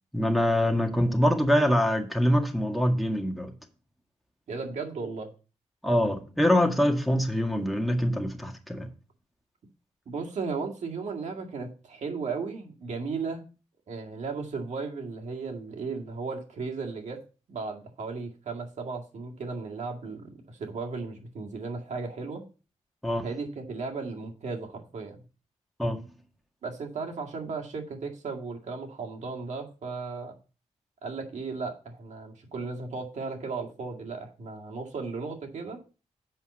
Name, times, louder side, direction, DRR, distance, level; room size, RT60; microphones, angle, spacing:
voice 1, 0.1-3.5 5.8-8.9 23.0-23.2 25.8-26.0, equal, ahead, 1.9 m, -24 dB
voice 2, 4.5-5.3 10.1-13.4 13.9-17.2 17.5-22.5 23.2-25.2 26.6-30.3 31.0-35.8, right 4 dB, 70° right, 2.1 m, -35 dB
7.9 x 5.4 x 5.5 m
cardioid pair, 85°, 13 cm